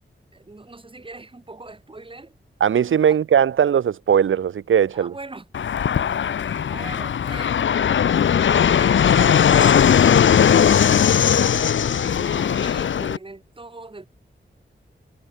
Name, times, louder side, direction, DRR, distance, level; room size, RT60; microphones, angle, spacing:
voice 1, 0.3-2.4 3.1-3.2 4.9-5.5 6.4-7.6 8.7-10.0 11.8-14.1, right 2 dB, 25° right, 3.6 m, -40 dB
voice 2, 2.6-5.1, right 8 dB, 85° right, 0.7 m, -19 dB
Fixed-wing aircraft airplane, 5.5-13.2, left 8 dB, 70° left, 0.6 m, -18 dB
wide cardioid pair, 115°, 20 cm